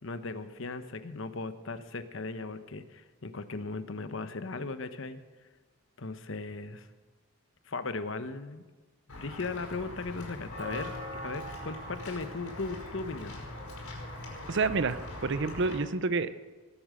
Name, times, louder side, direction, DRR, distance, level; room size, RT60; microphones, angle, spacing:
voice 1, 0.0-5.2 6.0-6.9 7.7-8.6 9.1-13.4, left 3 dB, 60° left, 11 dB, 0.9 m, -37 dB
Walk footsteps / Bell, 9.1-15.8, left 1 dB, 85° left, 4.7 m, -41 dB
voice 2, 14.5-16.3, right 4 dB, 55° right, 14 dB, 0.7 m, -29 dB
19.0 x 8.6 x 6.4 m, 1.3 s
head